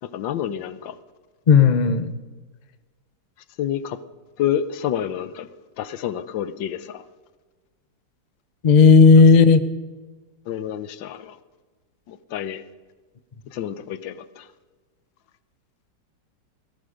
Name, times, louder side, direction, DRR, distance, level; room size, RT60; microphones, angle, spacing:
voice 1, 0.0-1.0 3.6-4.0 4.4-5.5 5.8-7.0 10.5-11.4 12.1-12.6 13.5-14.5, left 10 dB, 80° left, 14 dB, 1.5 m, -28 dB
voice 2, 1.5-2.1 8.6-9.6, left 5 dB, 55° left, 11 dB, 0.4 m, -12 dB
17.5 x 14.5 x 5.1 m, 1.3 s
omnidirectional pair, 2.0 m